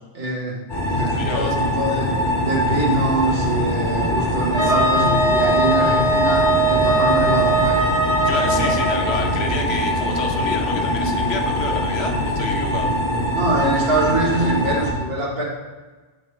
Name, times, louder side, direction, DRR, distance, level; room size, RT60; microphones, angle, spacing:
voice 1, 0.1-7.9 8.4-8.8 13.3-15.4, right 2 dB, 55° right, -3 dB, 1.6 m, -24 dB
sound 1, 0.7-14.9, left 1 dB, 15° left, 1.6 m, -23 dB
voice 2, 1.1-1.5 4.6-4.7 6.9-7.0 8.2-12.9, left 4 dB, 65° left, 2 dB, 1.0 m, -29 dB
Wind instrument woodwind instrument, 4.6-9.3, right 2 dB, 20° right, 1.1 m, -20 dB
8.1 x 4.0 x 3.2 m, 1.3 s
omnidirectional pair, 1.2 m